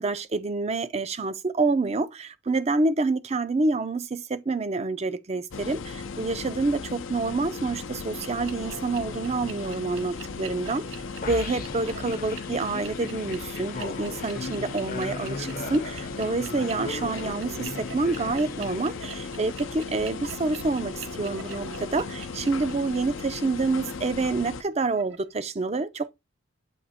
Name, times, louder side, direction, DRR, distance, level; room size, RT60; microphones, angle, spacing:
voice 1, 0.0-10.8 11.2-26.1, right 3 dB, 30° right, 0.5 m, -27 dB
sound 1, 5.5-24.6, left 5 dB, 75° left, 0.6 m, -37 dB
sound 2, 8.1-25.3, right 5 dB, 75° right, 0.8 m, -45 dB
sound 3, 11.2-19.5, left 3 dB, 45° left, 0.7 m, -38 dB
8.0 x 2.9 x 4.2 m
head